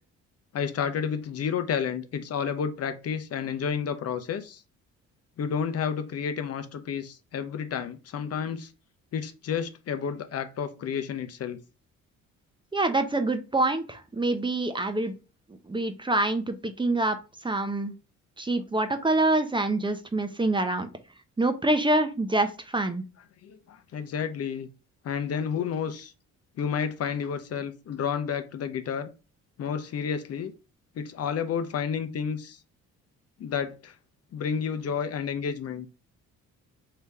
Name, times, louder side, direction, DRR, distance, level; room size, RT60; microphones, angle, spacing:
voice 1, 0.5-4.6 5.4-8.7 9.1-11.6 23.4-24.7 25.0-26.1 26.6-29.1 29.6-30.5 31.0-32.6 33.4-33.9 34.3-35.9, left 7 dB, 55° left, 0.7 m, -31 dB
voice 2, 12.7-15.1 15.7-17.2 17.4-17.9 18.4-20.9 21.4-23.0, right 2 dB, 15° right, 0.6 m, -26 dB
3.3 x 2.9 x 4.7 m
cardioid pair, 90°, 30 cm